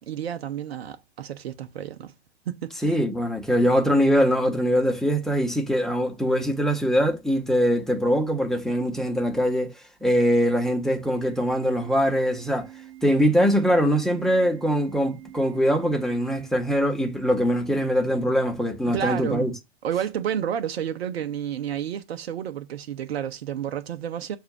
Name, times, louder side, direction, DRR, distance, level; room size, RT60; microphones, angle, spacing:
voice 1, 0.0-2.1 2.5-3.0 18.9-19.5 19.8-24.4, right 9 dB, 70° right, 0.7 m, -30 dB
voice 2, 2.8-9.7 10.0-12.7 13.0-19.5, equal, ahead, 1.1 m, -22 dB
Organ, 11.1-17.1, right 13 dB, 35° right, 3.7 m, -46 dB
6.8 x 2.6 x 5.6 m
hypercardioid pair, 100°, 32 cm